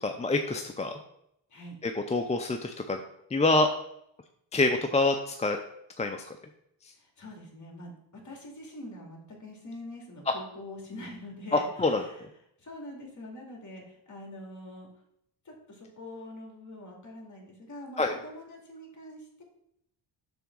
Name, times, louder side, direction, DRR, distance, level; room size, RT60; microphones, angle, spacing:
voice 1, 0.0-1.0 1.8-3.0 3.3-3.7 4.5-5.6 6.0-6.3 11.5-12.0 18.0-18.1, left 2 dB, 15° left, 5 dB, 0.4 m, -26 dB
voice 2, 6.9-7.9 8.2-12.2 12.6-14.9 15.4-19.4, left 1 dB, 35° left, 0 dB, 2.5 m, -44 dB
6.8 x 3.5 x 6.2 m, 0.75 s
cardioid pair, 90°, 49 cm